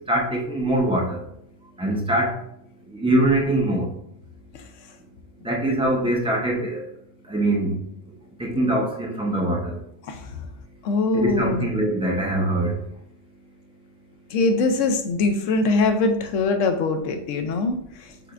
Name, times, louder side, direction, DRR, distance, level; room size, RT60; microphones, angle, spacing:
voice 1, 0.1-1.2 1.8-2.3 2.9-3.9 5.4-6.8 7.3-7.8 8.4-9.8 11.1-12.8, right 1 dB, 5° right, -2 dB, 0.7 m, -23 dB
voice 2, 10.8-11.7 14.3-18.1, left 3 dB, 85° left, 7 dB, 1.0 m, -22 dB
6.4 x 3.3 x 2.5 m, 0.74 s
omnidirectional pair, 1.3 m